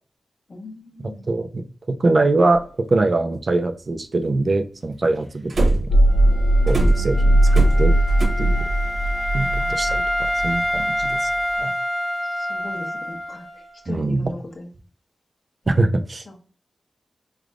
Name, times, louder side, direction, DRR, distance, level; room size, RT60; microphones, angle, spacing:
voice 1, 0.5-1.3 7.0-7.1 9.5-9.8 12.2-14.7 15.6-15.9 16.3-16.4, left 2 dB, 50° left, 2 dB, 1.0 m, -39 dB
voice 2, 1.3-2.6 2.9-5.9 6.7-7.9 8.4-8.6 9.3-11.3 11.6-11.7 13.9-14.3 15.7-16.2, right 2 dB, 45° right, 7 dB, 0.4 m, -23 dB
sound 1, 2.5-2.6 5.5-6.0 6.7-8.3, right 2 dB, 65° right, 1.2 m, -21 dB
sound 2, 5.9-11.3, right 1 dB, 90° left, 0.6 m, -18 dB
Wind instrument woodwind instrument, 6.1-13.8, equal, 5° right, 0.8 m, -27 dB
4.5 x 3.4 x 2.4 m, 0.38 s
wide cardioid pair, 125°, 0 cm